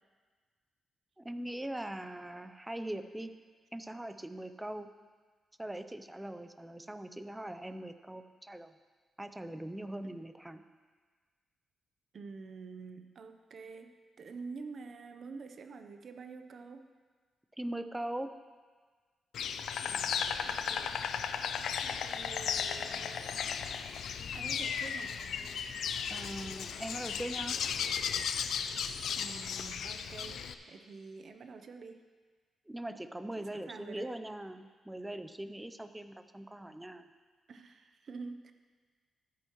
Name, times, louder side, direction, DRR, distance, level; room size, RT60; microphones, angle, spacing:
voice 1, 1.2-3.3 3.7-4.9 5.6-8.7 9.2-10.6 17.6-18.3 26.1-27.6 32.7-37.1, right 1 dB, 10° right, 10 dB, 0.5 m, -41 dB
voice 2, 12.1-16.9 19.8-20.1 20.4-21.4 21.8-23.5 24.3-25.2 29.2-32.0 33.4-34.1 37.5-38.5, right 4 dB, 55° right, 8 dB, 0.7 m, -48 dB
Insect, 19.3-30.5, left 7 dB, 80° left, 0.4 m, -35 dB
13.0 x 9.1 x 3.1 m, 1.5 s
cardioid pair, 100°, 0 cm